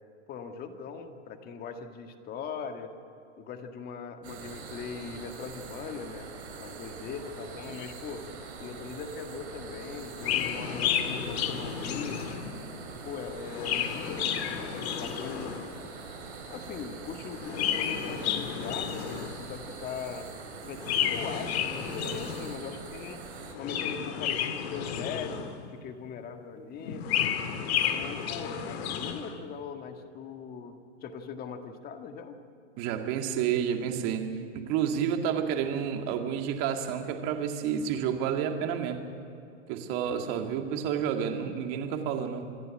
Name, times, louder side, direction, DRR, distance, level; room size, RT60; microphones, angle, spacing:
voice 1, 0.3-2.9 3.4-6.3 6.6-8.3 8.6-12.4 13.0-15.6 16.5-20.3 20.7-20.8 21.1-23.2 23.6-27.1 27.7-32.4, left 6 dB, 25° left, 6 dB, 1.8 m, -40 dB
sound 1, 4.2-23.5, right 4 dB, 65° right, 6.2 m, -43 dB
Chirp tweet, 10.2-12.7 13.3-15.8 17.3-19.5 20.8-22.7 23.4-25.7 26.8-29.3, left 9 dB, 60° left, 2.1 m, -32 dB
voice 2, 32.8-39.0 39.7-42.5, right 8 dB, 40° right, 4 dB, 2.2 m, -30 dB
27.0 x 11.0 x 9.9 m, 2.7 s
hypercardioid pair, 140°, 35 cm